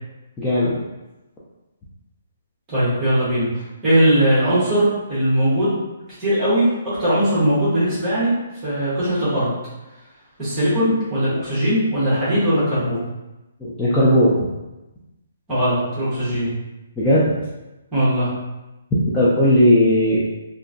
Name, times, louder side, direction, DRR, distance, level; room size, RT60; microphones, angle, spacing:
voice 1, 0.4-0.7 13.6-14.3 17.0-17.4 19.1-20.2, left 1 dB, 10° left, -10 dB, 0.3 m, -16 dB
voice 2, 2.7-5.7 6.2-8.3 8.6-9.5 10.4-13.0 15.5-16.5 17.9-18.3, equal, 10° right, -11 dB, 0.9 m, -19 dB
2.8 x 2.5 x 2.4 m, 1.0 s
hypercardioid pair, 180°, 0 cm